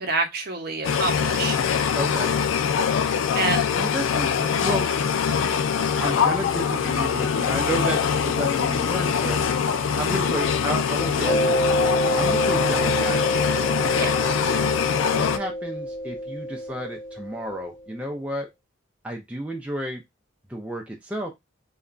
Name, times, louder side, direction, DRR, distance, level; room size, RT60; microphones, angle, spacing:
voice 1, 0.0-1.6 3.4-3.7 14.0-14.3, right 3 dB, 50° right, 0.7 m, -27 dB
sound 1, 0.8-15.4, left 7 dB, 80° left, 0.3 m, -23 dB
voice 2, 1.9-2.3 3.7-5.3 5.6-11.9 12.2-13.3 13.5-13.7 15.1-18.5 19.0-20.0 20.5-21.3, right 1 dB, 5° right, 0.3 m, -32 dB
Mallet percussion, 11.3-17.6, equal, 65° left, 0.8 m, -27 dB
2.8 x 2.2 x 2.4 m
head